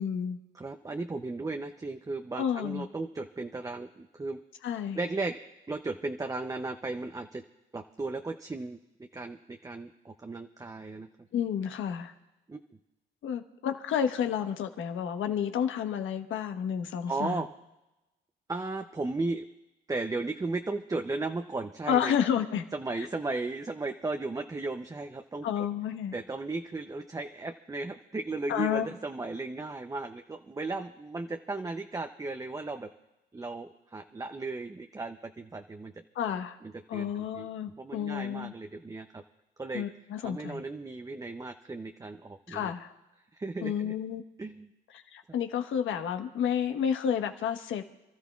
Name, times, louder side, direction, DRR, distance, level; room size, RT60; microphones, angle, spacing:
voice 1, 0.0-0.4 2.4-2.9 4.6-5.0 11.3-12.1 13.2-17.4 21.9-22.6 25.4-26.1 28.5-28.9 36.1-36.6 36.9-38.5 39.7-40.6 42.5-42.9 43.6-44.2 44.9-47.8, left 8 dB, 75° left, 6 dB, 1.2 m, -30 dB
voice 2, 0.5-4.4 4.9-5.4 5.7-7.4 7.7-8.8 9.1-11.1 12.5-12.6 17.1-17.5 18.5-19.4 19.9-22.1 22.7-25.7 26.1-32.9 33.3-35.9 36.6-37.5 37.8-39.2 39.6-39.8 40.2-42.7 43.3-43.9 44.4-44.7, right 3 dB, 15° right, 5 dB, 0.6 m, -35 dB
28.5 x 13.0 x 2.4 m, 0.99 s
cardioid pair, 90°, 20 cm